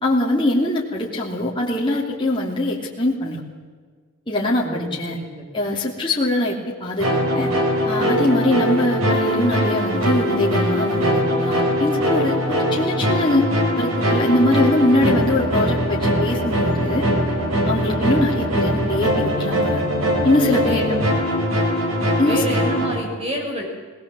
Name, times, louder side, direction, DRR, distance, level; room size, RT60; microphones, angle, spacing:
voice 1, 0.0-3.4 4.3-5.2 5.5-7.5 7.8-13.5 13.8-17.1 17.6-19.9 20.2-20.9 22.2-22.4, left 1 dB, 25° left, -4 dB, 3.1 m, -22 dB
voice 2, 4.6-5.4 20.6-21.0 22.2-23.6, right 1 dB, 30° right, 1 dB, 6.0 m, -28 dB
sound 1, 7.0-23.0, equal, 85° right, 4.9 m, -21 dB
20.5 x 20.5 x 7.8 m, 1.5 s
head